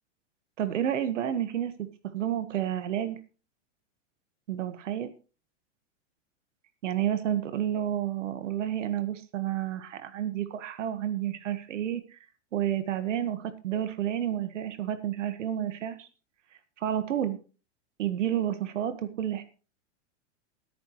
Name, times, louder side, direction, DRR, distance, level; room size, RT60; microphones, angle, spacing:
voice 1, 0.6-1.7 2.1-3.2 4.5-5.1 6.8-12.2 12.5-16.1 16.8-17.4 18.0-19.4, right 10 dB, 85° right, 9 dB, 1.6 m, -30 dB
20.5 x 9.5 x 3.1 m, 0.36 s
supercardioid pair, 160°, 36 cm